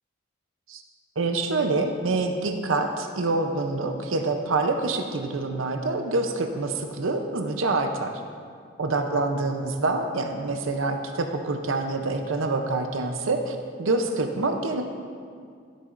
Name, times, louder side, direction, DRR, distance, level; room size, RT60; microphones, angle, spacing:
voice 1, 1.2-8.2 8.8-14.8, right 3 dB, 85° right, 5 dB, 0.7 m, -26 dB
13.0 x 8.2 x 2.5 m, 2.2 s
head